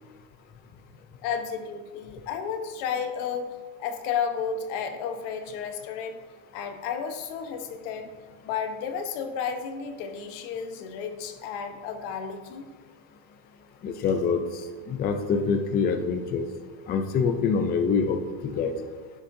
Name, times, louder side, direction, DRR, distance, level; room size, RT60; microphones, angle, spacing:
voice 1, 1.2-3.5 3.8-6.2 6.5-8.1 8.4-12.6, left 7 dB, 70° left, 6 dB, 1.1 m, -32 dB
voice 2, 13.8-14.4 14.9-16.4 16.9-18.2 18.4-18.7, left 5 dB, 25° left, 5 dB, 0.5 m, -25 dB
10.0 x 7.2 x 2.7 m, 1.5 s
cardioid pair, 155°, 39 cm